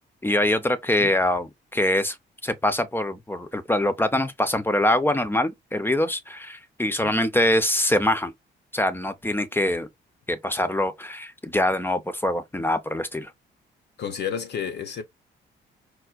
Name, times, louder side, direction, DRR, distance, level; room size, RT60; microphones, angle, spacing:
voice 1, 0.2-2.2 2.4-8.3 8.7-9.9 10.3-13.3, left 1 dB, 10° left, 0.6 m, -24 dB
voice 2, 14.0-15.0, left 8 dB, 60° left, 0.7 m, -31 dB
4.5 x 2.1 x 2.4 m
cardioid pair, 90°, 20 cm